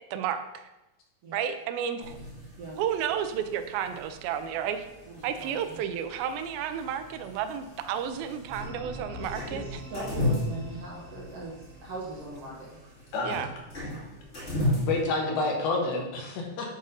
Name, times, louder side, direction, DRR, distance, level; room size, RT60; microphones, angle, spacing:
voice 1, 0.1-0.7 1.3-2.2 2.8-4.9 5.2-9.8 13.2-13.5, right 9 dB, 85° right, 9 dB, 2.5 m, -32 dB
sound 1, 2.0-15.0, left 1 dB, 25° left, 1.9 m, -36 dB
voice 2, 5.1-5.8 8.9-12.7 14.5-14.8 15.3-15.4, right 2 dB, 60° right, -4 dB, 1.6 m, -40 dB
sound 2, 8.5-13.2, equal, 30° right, 1.7 m, -44 dB
voice 3, 14.9-16.7, left 3 dB, 90° left, 0 dB, 3.3 m, -28 dB
8.7 x 3.7 x 5.5 m, 0.96 s
omnidirectional pair, 4.2 m